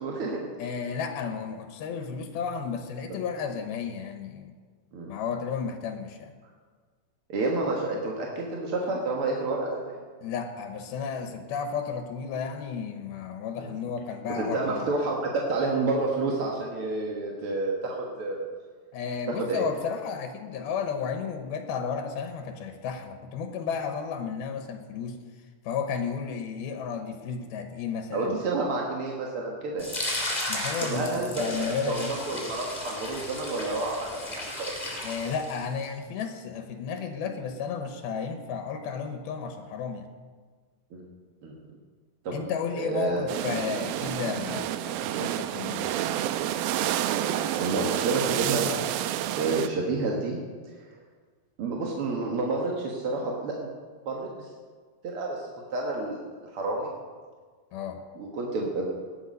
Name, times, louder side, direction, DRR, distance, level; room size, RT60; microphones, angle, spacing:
voice 1, 0.0-0.5 4.9-5.1 7.3-10.0 13.6-13.7 14.3-18.5 19.3-19.6 28.1-29.9 30.8-35.0 40.9-41.0 41.4-41.5 42.2-42.4 42.8-43.2 47.2-48.7 49.4-50.4 51.6-53.7 54.1-54.5 55.0-56.9 58.2-58.9, right 3 dB, 50° right, -1 dB, 1.8 m, -29 dB
voice 2, 0.6-4.6 5.1-6.3 10.2-14.9 18.9-25.2 25.6-28.4 30.5-32.2 35.0-40.1 42.3-46.0 57.7-58.0, left 6 dB, 85° left, 6 dB, 2.9 m, -33 dB
sound 1, 29.8-35.8, left 1 dB, 10° left, 2.8 m, -34 dB
sound 2, 43.3-49.7, right 12 dB, 85° right, 2.4 m, -29 dB
18.5 x 11.0 x 5.3 m, 1.5 s
omnidirectional pair, 4.3 m